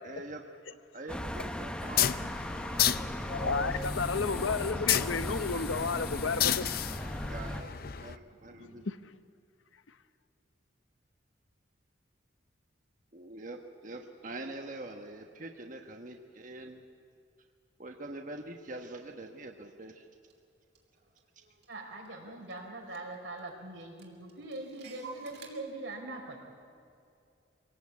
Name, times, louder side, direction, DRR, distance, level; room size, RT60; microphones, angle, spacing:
voice 1, 0.0-0.4 0.9-2.1 7.3-8.8 13.1-16.8 17.8-20.0, right 2 dB, 40° right, 3 dB, 1.3 m, -44 dB
sound 1, 1.1-7.6, equal, 5° left, 0.9 m, -37 dB
sound 2, 1.8-8.2, left 11 dB, 50° left, 0.6 m, -32 dB
voice 2, 3.3-6.7 8.6-9.2, left 4 dB, 90° left, 12 dB, 0.9 m, -32 dB
Clock, 20.3-20.4 20.7-22.2 22.5-22.6 22.9-23.5 23.8-25.5, right 5 dB, 60° right, 3.2 m, -51 dB
voice 3, 21.7-26.4, right 2 dB, 80° right, 0 dB, 5.0 m, -42 dB
24.5 x 18.0 x 8.5 m, 2.4 s
head